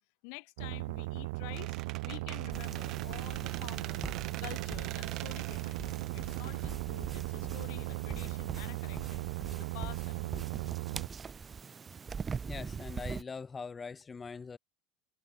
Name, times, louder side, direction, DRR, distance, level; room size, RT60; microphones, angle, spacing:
voice 1, 0.2-4.1 4.4-10.7, left 40 dB or more, 55° left, 8.0 m, -49 dB
sound 1, 0.6-11.1, right 24 dB, 70° right, 0.5 m, -37 dB
Squeak, 1.5-7.3, right 16 dB, 35° right, 1.4 m, -45 dB
sound 2, 2.5-13.2, right 6 dB, 15° right, 0.7 m, -42 dB
voice 2, 12.5-14.6, left 5 dB, 15° left, 2.6 m, -42 dB
cardioid pair, 180°, 0 cm